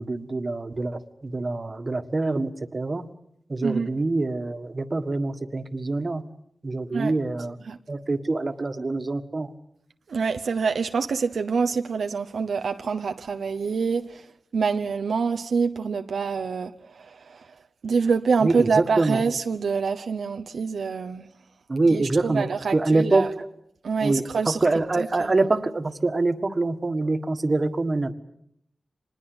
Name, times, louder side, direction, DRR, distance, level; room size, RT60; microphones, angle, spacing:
voice 1, 0.0-3.1 3.5-6.2 6.6-7.6 7.9-9.5 18.4-19.2 21.7-22.5 22.7-23.5 24.0-28.1, right 2 dB, 40° right, 1.7 m, -25 dB
voice 2, 10.1-21.3 21.9-23.3 23.8-24.6 25.0-25.1, right 5 dB, 85° right, 0.8 m, -26 dB
25.5 x 20.5 x 8.0 m
cardioid pair, 70°, 0 cm